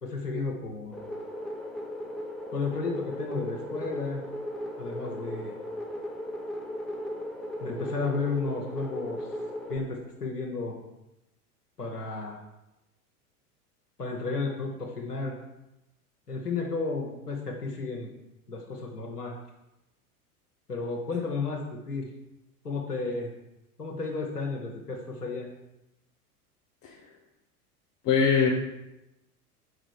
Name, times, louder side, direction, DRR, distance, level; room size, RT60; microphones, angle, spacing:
voice 1, 0.0-0.9 2.5-4.2 4.8-5.5 7.6-9.3 9.7-10.8 11.8-12.4 14.0-15.3 16.3-18.1 18.5-19.3 20.7-22.1 22.6-23.3 23.8-25.5, left 4 dB, 85° left, -1 dB, 1.0 m, -33 dB
sound 1, 0.9-9.8, equal, ahead, 0.6 m, -36 dB
voice 2, 28.0-28.5, left 6 dB, 30° left, -1 dB, 0.9 m, -22 dB
4.9 x 4.8 x 4.7 m, 0.94 s
figure-of-eight pair, 85°, 45 cm